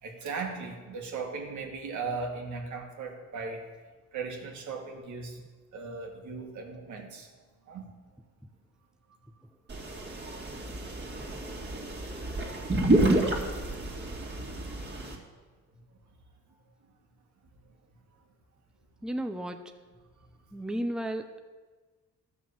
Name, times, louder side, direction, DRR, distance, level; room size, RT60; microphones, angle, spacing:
voice 1, 0.0-3.7 4.1-5.4 5.7-7.3 7.7-7.9 10.8-11.1 11.7-11.8 12.6-13.0 15.7-15.8 16.8-16.9 20.2-20.3, right 4 dB, 75° right, 2 dB, 2.0 m, -38 dB
sound 1, 9.7-15.1, right 1 dB, 35° right, 2.3 m, -29 dB
voice 2, 19.0-19.7 20.5-21.4, right 1 dB, ahead, 7 dB, 0.7 m, -33 dB
13.0 x 6.2 x 7.0 m, 1.3 s
cardioid pair, 90°, 30 cm